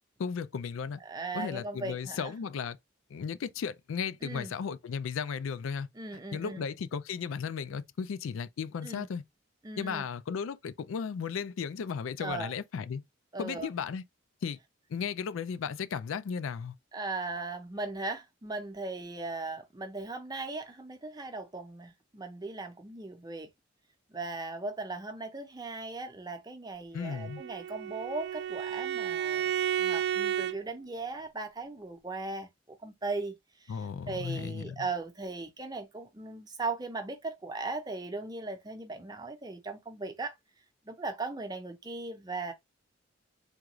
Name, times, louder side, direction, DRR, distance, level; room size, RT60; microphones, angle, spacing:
voice 1, 0.2-1.0 1.3-2.8 3.1-5.9 6.3-9.2 9.8-13.0 13.4-14.0 14.4-14.6 14.9-16.8 26.9-27.4 33.7-34.8, left 6 dB, 85° left, 0.4 m, -35 dB
voice 2, 1.0-2.3 4.2-4.5 5.9-6.6 8.8-9.1 9.6-10.0 12.2-12.5 13.3-13.7 16.9-23.5 24.1-29.5 29.8-33.3 33.6-40.4 40.9-42.5, right 3 dB, 20° right, 0.6 m, -38 dB
Bowed string instrument, 27.0-30.6, right 10 dB, 55° right, 0.3 m, -32 dB
3.6 x 2.4 x 3.0 m
head